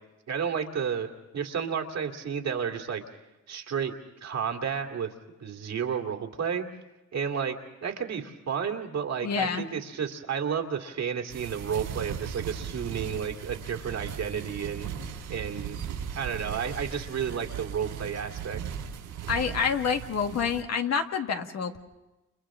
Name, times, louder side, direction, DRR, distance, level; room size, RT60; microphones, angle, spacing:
voice 1, 0.3-1.1 1.3-3.0 3.5-3.9 4.2-5.1 5.4-6.7 7.1-7.6 7.8-14.9 15.3-15.8 16.1-18.6, right 7 dB, 60° right, 2 dB, 2.5 m, -31 dB
voice 2, 9.2-9.7 19.3-21.8, left 6 dB, 60° left, 5 dB, 1.8 m, -27 dB
sound 1, 11.3-20.6, right 8 dB, 85° right, 4.3 m, -38 dB
29.5 x 29.0 x 3.8 m, 1.0 s
cardioid pair, 90°, 30 cm